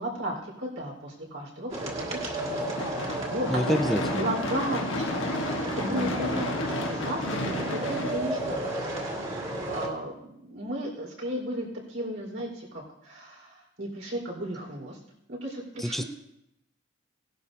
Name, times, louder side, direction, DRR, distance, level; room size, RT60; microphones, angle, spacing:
voice 1, 0.0-3.8 4.1-5.3 5.7-8.7 9.1-15.0 15.3-16.1, right 1 dB, 80° right, -3 dB, 4.5 m, -35 dB
sound 1, 1.7-9.9, right 1 dB, 35° right, 2.2 m, -33 dB
Gunshot gunfire / Fireworks, 2.8-9.0, left 2 dB, 70° left, 1.2 m, -33 dB
voice 2, 3.5-4.3 5.9-6.3 15.8-16.0, equal, ahead, 8 dB, 0.3 m, -28 dB
18.0 x 11.5 x 2.8 m, 0.83 s
head